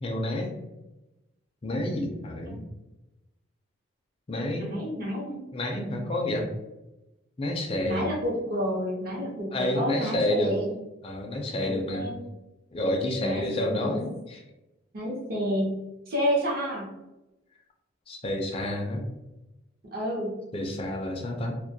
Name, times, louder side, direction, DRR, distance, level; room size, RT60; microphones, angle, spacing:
voice 1, 0.0-0.5 1.6-2.6 4.3-4.8 5.5-6.5 7.4-8.0 9.5-10.5 11.0-12.2 12.7-14.4 18.1-19.0 20.5-21.5, left 1 dB, 25° left, 1 dB, 0.4 m, -29 dB
voice 2, 4.4-5.5 7.9-10.8 11.6-12.3 13.2-14.0 14.9-15.8 16.1-16.9 19.8-20.4, equal, 45° right, -2 dB, 0.7 m, -30 dB
2.2 x 2.2 x 2.6 m, 0.99 s
head